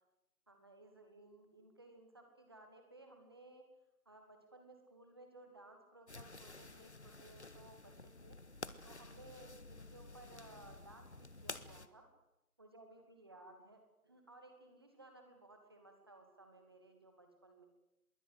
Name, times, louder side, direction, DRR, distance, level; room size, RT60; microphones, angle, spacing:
voice 1, 0.5-3.7 4.1-8.4 8.8-12.0 12.6-17.7, right 2 dB, 15° right, 5 dB, 2.4 m, -59 dB
sound 1, 6.1-11.9, left 2 dB, 45° left, 1.5 m, -51 dB
26.0 x 22.0 x 8.0 m, 0.88 s
figure-of-eight pair, 175°, 45 cm